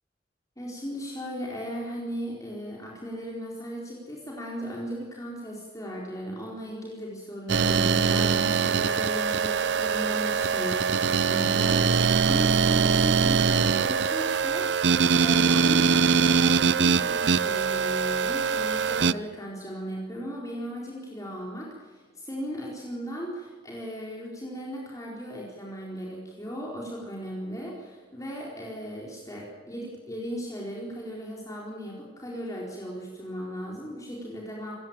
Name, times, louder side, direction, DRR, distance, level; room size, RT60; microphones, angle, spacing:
voice 1, 0.6-34.7, equal, 20° left, -3 dB, 4.4 m, -37 dB
sound 1, 7.5-19.1, right 5 dB, 90° right, 0.6 m, -23 dB
26.5 x 16.5 x 8.9 m, 1.4 s
head